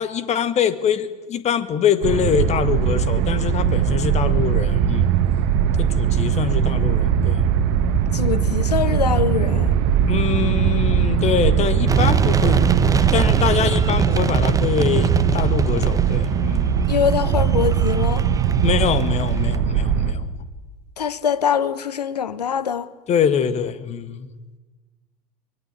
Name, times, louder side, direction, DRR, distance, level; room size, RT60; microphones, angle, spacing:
voice 1, 0.0-5.1 5.8-7.5 10.1-12.6 13.0-16.7 18.6-20.3 23.1-24.3, left 8 dB, 35° left, 2.0 m, -24 dB
sound 1, 2.0-20.1, right 7 dB, 55° right, 2.0 m, -21 dB
sound 2, 2.8-19.1, right 13 dB, 35° right, 0.7 m, -25 dB
voice 2, 8.1-9.8 16.9-18.3 21.0-22.9, left 8 dB, 75° left, 1.1 m, -23 dB
sound 3, 11.9-19.6, right 4 dB, 15° right, 1.3 m, -24 dB
24.0 x 21.5 x 8.5 m
figure-of-eight pair, 80°, 20 cm